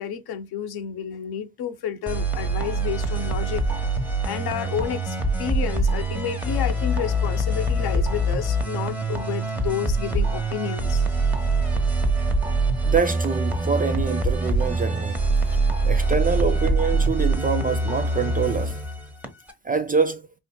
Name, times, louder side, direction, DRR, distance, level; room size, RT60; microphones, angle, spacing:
voice 1, 0.0-3.7 4.2-11.0, left 8 dB, 60° left, 0.8 m, -31 dB
sound 1, 2.1-19.5, right 2 dB, 5° right, 1.1 m, -24 dB
voice 2, 12.8-15.2 15.8-18.8 19.6-20.2, right 5 dB, 20° right, 0.3 m, -25 dB
4.4 x 2.7 x 2.2 m
supercardioid pair, 75°, 42 cm